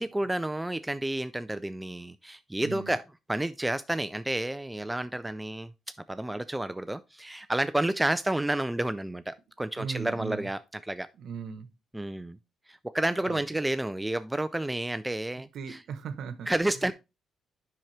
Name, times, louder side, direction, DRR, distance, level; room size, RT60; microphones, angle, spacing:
voice 1, 0.0-3.0 3.3-5.7 6.1-11.1 11.9-12.4 12.7-15.8 16.5-16.9, right 1 dB, 10° right, 0.4 m, -30 dB
voice 2, 2.6-2.9 9.8-10.5 11.2-11.7 13.3-13.4 15.5-16.5, right 6 dB, 70° right, 1.0 m, -37 dB
7.5 x 5.9 x 3.2 m
cardioid pair, 90°, 0 cm